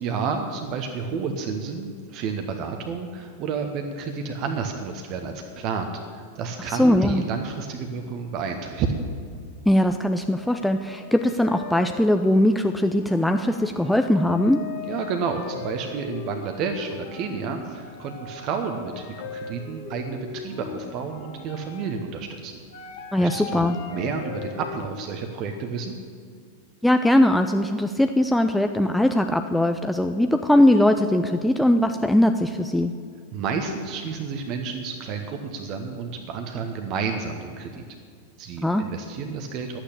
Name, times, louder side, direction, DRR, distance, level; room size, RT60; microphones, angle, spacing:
voice 1, 0.0-9.0 14.9-22.6 23.2-25.9 33.3-37.8 38.4-39.8, right 5 dB, 40° right, 4 dB, 1.0 m, -30 dB
voice 2, 6.8-7.2 9.7-14.6 23.1-23.8 26.8-32.9 38.6-38.8, left 1 dB, 5° left, 6 dB, 0.5 m, -20 dB
sound 1, 7.7-7.8 8.1-8.8 9.2-25.1, left 6 dB, 55° left, 1.4 m, -40 dB
11.5 x 9.0 x 8.5 m, 2.2 s
figure-of-eight pair, 90°, 0 cm